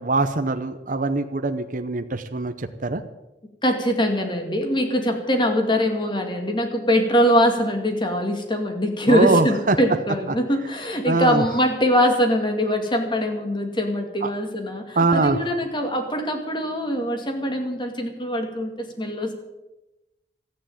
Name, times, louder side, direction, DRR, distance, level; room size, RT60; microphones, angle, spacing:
voice 1, 0.0-3.0 9.1-9.8 11.1-11.4 14.2-14.3 15.0-15.4, right 3 dB, 50° right, 8 dB, 0.8 m, -22 dB
voice 2, 3.6-19.3, equal, 25° left, 4 dB, 2.2 m, -22 dB
13.5 x 9.5 x 9.0 m, 0.99 s
head